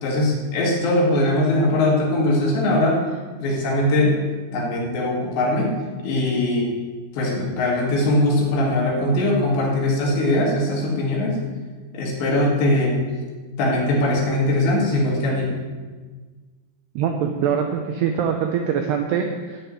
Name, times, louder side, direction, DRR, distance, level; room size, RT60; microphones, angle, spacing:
voice 1, 0.0-3.0 3.4-4.2 4.5-5.7 6.0-6.7 7.1-11.4 11.9-13.0 13.6-15.6, left 1 dB, 65° left, -2 dB, 4.3 m, -21 dB
voice 2, 17.0-19.6, right 7 dB, 80° right, 4 dB, 2.4 m, -23 dB
11.5 x 6.9 x 9.4 m, 1.4 s
omnidirectional pair, 5.8 m